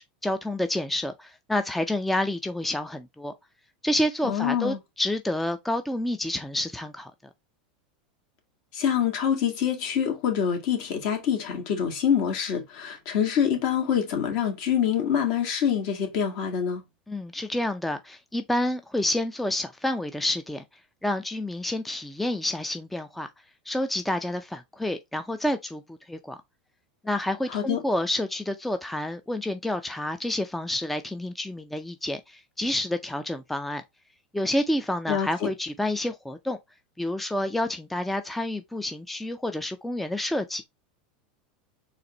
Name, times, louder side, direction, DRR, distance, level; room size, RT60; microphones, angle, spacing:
voice 1, 0.0-3.3 3.8-7.1 17.1-20.6 21.0-23.3 23.7-25.8 26.1-26.4 27.0-33.8 34.3-36.6 37.0-40.6, left 1 dB, 5° left, 0.4 m, -29 dB
voice 2, 4.3-4.8 8.7-16.8 27.5-27.8 35.1-35.5, left 8 dB, 60° left, 1.7 m, -25 dB
4.1 x 2.6 x 3.9 m
supercardioid pair, 125°, 5 cm